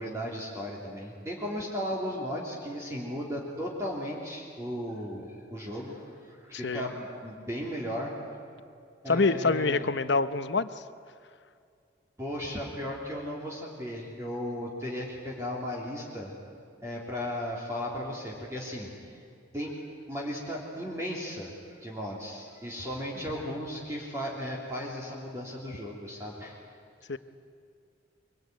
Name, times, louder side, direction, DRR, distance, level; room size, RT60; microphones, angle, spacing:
voice 1, 0.0-8.1 9.0-9.9 12.2-16.3 16.8-19.2 19.5-19.8 20.1-26.6, equal, 15° right, -4 dB, 3.3 m, -36 dB
voice 2, 6.5-6.9 9.1-10.7 23.4-23.5 27.1-27.2, left 3 dB, 65° left, 12 dB, 0.9 m, -26 dB
24.0 x 24.0 x 9.5 m, 2.3 s
head